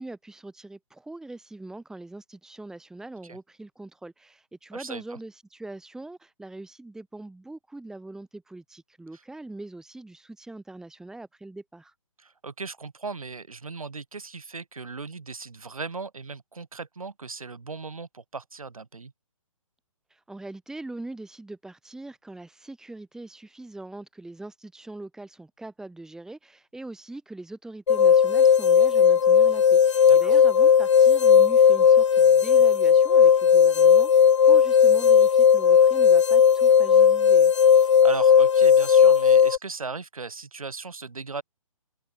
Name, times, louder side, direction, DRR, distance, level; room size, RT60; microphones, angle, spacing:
voice 1, 0.0-11.9 20.1-37.5, right 2 dB, 5° right, 7.8 m, -42 dB
voice 2, 4.7-5.0 12.2-19.1 30.1-30.3 37.8-41.4, right 4 dB, 80° right, 6.5 m, -37 dB
sound 1, 27.9-39.6, left 7 dB, 60° left, 1.7 m, -17 dB
figure-of-eight pair, 140°, 18 cm